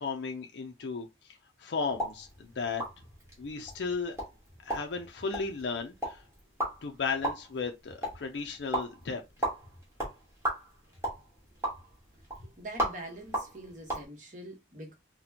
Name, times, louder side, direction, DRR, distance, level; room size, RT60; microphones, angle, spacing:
voice 1, 0.0-2.8 3.4-4.2 4.6-6.2 6.8-9.2, left 4 dB, 75° left, 0.5 m, -35 dB
sound 1, 1.9-14.0, right 1 dB, 15° right, 1.4 m, -37 dB
voice 2, 12.6-14.9, right 1 dB, 45° right, 1.2 m, -44 dB
4.2 x 2.2 x 2.7 m
head